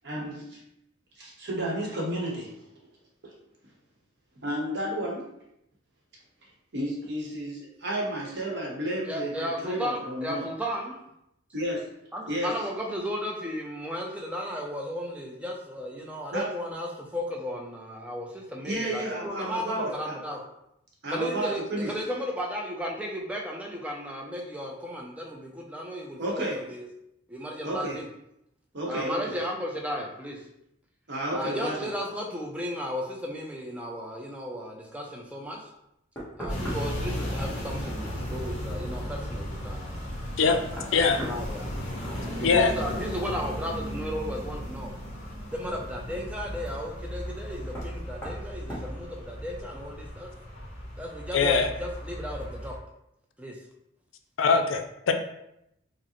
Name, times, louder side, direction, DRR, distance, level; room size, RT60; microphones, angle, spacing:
voice 1, 0.0-0.6 1.2-2.5 3.2-3.3 4.4-5.3 6.7-10.4 11.5-11.9 12.3-12.5 16.3-16.5 18.6-20.2 21.0-21.9 26.2-26.6 27.6-28.0 28.7-29.4 31.1-31.9, right 1 dB, 60° right, -2 dB, 0.9 m, -31 dB
voice 2, 9.0-11.0 12.1-20.4 21.1-26.9 27.3-28.1 28.9-30.4 31.3-35.7 36.4-39.9 40.7-44.9 45.5-50.3 51.0-52.8 53.4-53.6, equal, 5° right, -1 dB, 0.4 m, -35 dB
Knock, 36.2-37.1 39.5-39.6 40.4-42.3 42.6-43.2 44.9-45.0 47.7-48.0 48.2-48.4 48.7-48.9, equal, 10° left, 1.0 m, -38 dB
sound 1, 36.5-52.8, equal, 40° left, 0.9 m, -36 dB
voice 3, 42.4-42.7 51.3-51.7 54.4-55.1, left 5 dB, 70° left, 5 dB, 0.4 m, -22 dB
4.7 x 2.1 x 2.9 m, 0.80 s
head